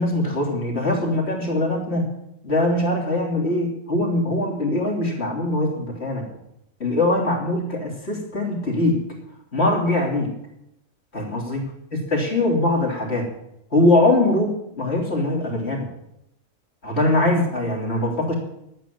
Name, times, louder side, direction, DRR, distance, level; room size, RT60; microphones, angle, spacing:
voice 1, 0.0-2.1 2.4-6.3 6.8-9.0 9.5-10.3 11.1-11.6 12.1-13.3 13.7-15.9 16.8-18.3, left 1 dB, 45° left, -1 dB, 3.5 m, -22 dB
11.5 x 9.2 x 9.3 m, 0.80 s
omnidirectional pair, 1.5 m